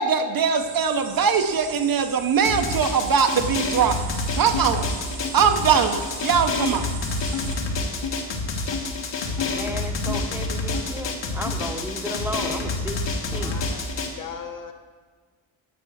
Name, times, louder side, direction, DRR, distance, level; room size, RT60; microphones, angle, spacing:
voice 1, 0.0-4.0 4.3-4.9 5.3-6.9, right 6 dB, 45° right, 7 dB, 0.7 m, -21 dB
sound 1, 0.6-7.6, right 6 dB, 75° right, 1.7 m, -40 dB
Drum, 2.4-14.1, left 3 dB, 60° left, 1.6 m, -28 dB
sound 2, 4.5-4.7 5.2-5.3 5.9-6.0 6.6-6.8 7.3-7.5 8.0-8.2 8.7-8.9 9.4-9.5 10.1-10.2 10.7-10.8 11.5-11.6, left 9 dB, 90° left, 1.8 m, -32 dB
voice 2, 9.4-13.0 13.3-13.6, right 1 dB, 5° right, 3 dB, 0.8 m, -34 dB
voice 3, 13.3-14.7, left 6 dB, 40° left, 5 dB, 0.9 m, -38 dB
10.5 x 7.9 x 6.3 m, 1.5 s
wide cardioid pair, 175°, 48 cm